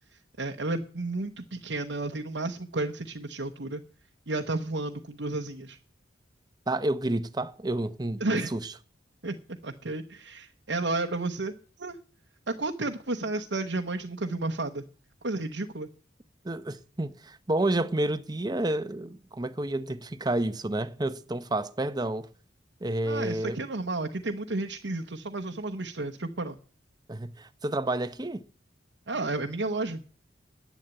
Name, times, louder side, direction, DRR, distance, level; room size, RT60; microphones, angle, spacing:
voice 1, 0.1-3.8 4.3-5.8 8.2-8.5 9.2-12.0 12.5-14.9 15.2-15.9 23.0-26.6 29.1-30.0, right 2 dB, 70° right, 1.0 m, -32 dB
voice 2, 6.7-8.2 8.5-8.6 16.4-22.3 22.8-23.6 27.1-28.4, right 1 dB, 20° right, 0.8 m, -30 dB
11.0 x 8.3 x 9.0 m
head